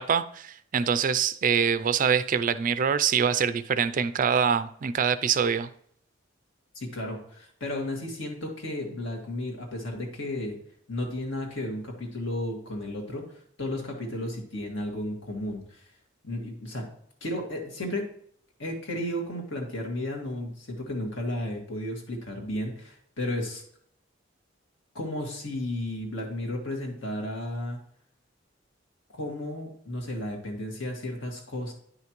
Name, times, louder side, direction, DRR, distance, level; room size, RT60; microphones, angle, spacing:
voice 1, 0.0-5.7, right 7 dB, 45° right, 0.4 m, -24 dB
voice 2, 6.7-10.6 10.9-13.3 13.6-15.9 16.2-16.9 17.2-18.1 18.6-23.6 24.9-27.8 29.2-31.7, left 1 dB, 70° left, 2.1 m, -33 dB
9.9 x 5.8 x 3.0 m
head